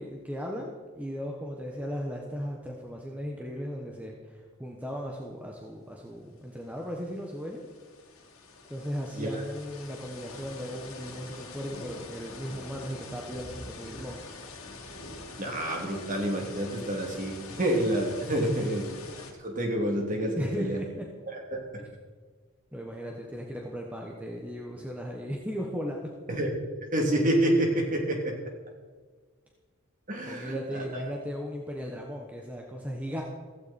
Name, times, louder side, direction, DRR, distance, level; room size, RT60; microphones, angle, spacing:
voice 1, 0.0-7.6 8.7-14.2 18.2-18.6 20.3-21.1 22.7-26.1 30.2-33.2, equal, 5° right, -1 dB, 1.3 m, -36 dB
sound 1, 6.4-6.5 6.7-19.3, left 3 dB, 80° left, 2.5 m, -45 dB
voice 2, 15.4-18.9 19.4-20.8 21.5-21.6 26.3-26.5 26.8-28.3 30.1-31.1, right 1 dB, 35° right, 1 dB, 3.0 m, -28 dB
15.5 x 15.5 x 4.4 m, 1.5 s
head